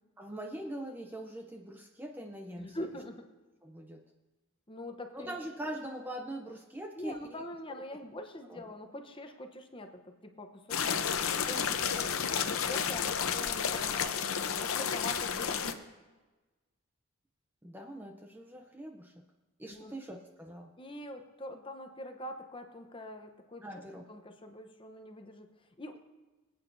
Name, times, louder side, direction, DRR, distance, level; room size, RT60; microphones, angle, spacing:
voice 1, 0.2-2.8 3.6-4.0 5.1-7.4 8.4-8.6 17.6-19.2 19.6-20.7 23.6-24.1, right 1 dB, 10° right, 3 dB, 0.5 m, -42 dB
voice 2, 2.6-3.3 4.7-5.4 7.0-15.7 19.7-19.9 20.8-23.8 24.1-26.0, left 1 dB, 25° left, 5 dB, 0.8 m, -44 dB
sound 1, 10.7-15.7, left 7 dB, 75° left, 0.7 m, -31 dB
23.0 x 8.8 x 2.6 m, 1.2 s
head